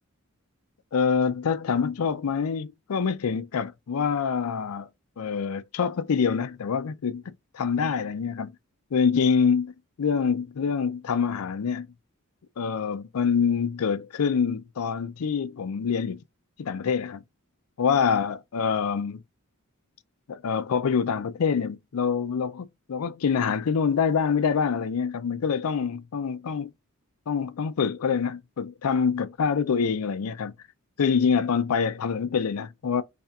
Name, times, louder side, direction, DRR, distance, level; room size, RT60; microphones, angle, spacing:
voice 1, 0.9-4.9 5.2-8.5 8.9-9.7 10.0-11.9 12.6-16.2 16.6-17.2 17.8-19.2 20.3-26.7 27.3-30.5 31.0-33.0, left 6 dB, 80° left, 0.4 m, -25 dB
4.2 x 3.3 x 2.4 m
head